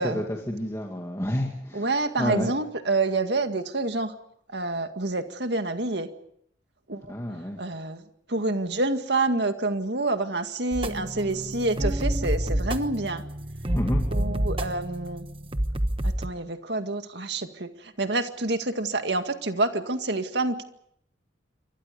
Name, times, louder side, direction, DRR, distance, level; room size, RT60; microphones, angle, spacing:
voice 1, 0.0-2.5 7.1-7.6 13.7-14.0, equal, 15° left, 1 dB, 2.3 m, -29 dB
voice 2, 1.7-4.1 4.5-6.1 6.9-7.1 7.6-8.0 8.3-13.2 14.1-15.2 16.0-20.6, right 2 dB, 60° right, 7 dB, 2.0 m, -27 dB
sound 1, 10.7-16.3, right 1 dB, 30° right, 1.2 m, -28 dB
28.0 x 24.5 x 5.3 m, 0.70 s
head